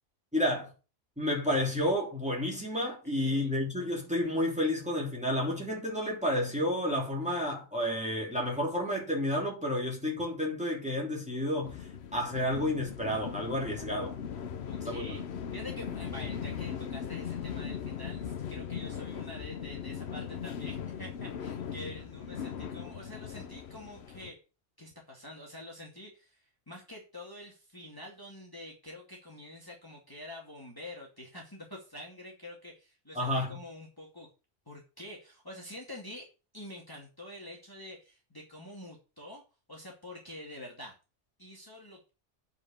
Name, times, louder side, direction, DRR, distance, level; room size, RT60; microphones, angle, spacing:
voice 1, 0.3-0.7 1.2-11.9 12.1-14.2 14.8-15.2 33.1-33.6, left 1 dB, 5° right, 3.1 m, -31 dB
voice 2, 3.0-3.5 14.6-24.4 24.8-34.3 34.7-36.3 36.5-39.4 39.7-41.0 41.4-42.1, left 1 dB, 20° left, 2.4 m, -47 dB
sound 1, 11.6-24.3, left 7 dB, 65° left, 1.1 m, -39 dB
9.4 x 5.0 x 6.8 m
omnidirectional pair, 1.2 m